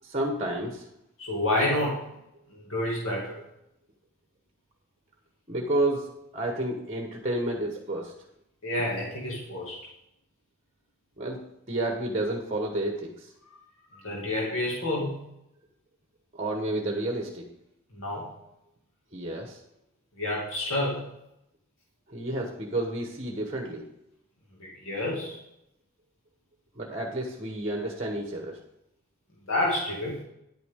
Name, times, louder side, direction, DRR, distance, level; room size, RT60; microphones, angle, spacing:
voice 1, 0.0-0.9 5.5-8.1 11.2-11.4 11.7-13.3 16.3-17.5 19.1-19.6 22.1-23.9 26.7-28.6, right 1 dB, 30° right, 1 dB, 1.2 m, -30 dB
voice 2, 1.2-2.0 2.5-3.4 8.6-9.8 13.9-15.1 17.9-18.2 20.2-21.0 24.6-25.4 29.5-30.2, left 1 dB, 75° left, -4 dB, 2.2 m, -29 dB
10.5 x 9.5 x 3.7 m, 0.82 s
head